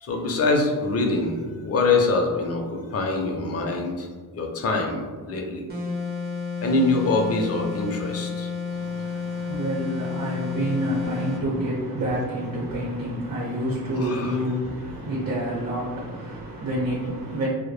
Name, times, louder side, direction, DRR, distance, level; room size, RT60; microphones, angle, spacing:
voice 1, 0.0-4.1 4.3-5.6 6.6-8.5 14.0-14.3, left 3 dB, 45° left, 0.5 m, -24 dB
sound 1, 5.7-11.5, left 5 dB, 30° right, 0.5 m, -31 dB
voice 2, 8.7-17.5, equal, 60° right, 0.7 m, -28 dB
2.2 x 2.1 x 3.1 m
wide cardioid pair, 115°, 36 cm